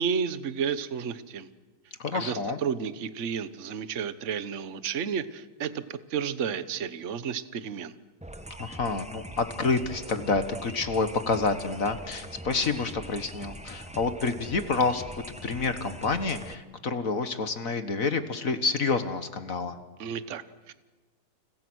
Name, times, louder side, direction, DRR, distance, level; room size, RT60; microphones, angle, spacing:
voice 1, 0.0-1.5 2.1-7.9 20.0-20.7, right 7 dB, 45° right, 13 dB, 1.2 m, -32 dB
voice 2, 2.0-2.6 8.6-15.0 15.4-19.8, left 4 dB, 40° left, 10 dB, 1.7 m, -28 dB
sound 1, 8.2-16.5, right 1 dB, 5° right, 0.5 m, -42 dB
30.0 x 29.5 x 6.3 m, 1.2 s
omnidirectional pair, 2.4 m